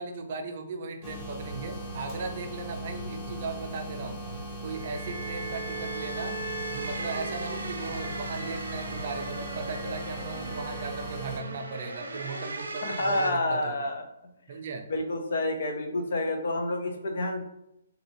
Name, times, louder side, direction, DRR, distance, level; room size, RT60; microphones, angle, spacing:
voice 1, 0.0-4.2 4.6-6.4 6.7-13.8 14.5-14.9, right 4 dB, 50° right, 5 dB, 0.5 m, -37 dB
sound 1, 1.0-11.4, right 1 dB, 20° left, 0.8 m, -38 dB
sound 2, 4.8-13.3, right 2 dB, 85° right, 0.7 m, -38 dB
voice 2, 12.8-14.0 14.9-17.4, left 2 dB, 65° left, 4 dB, 0.6 m, -29 dB
3.6 x 2.3 x 3.0 m, 0.82 s
hypercardioid pair, 150°, 0 cm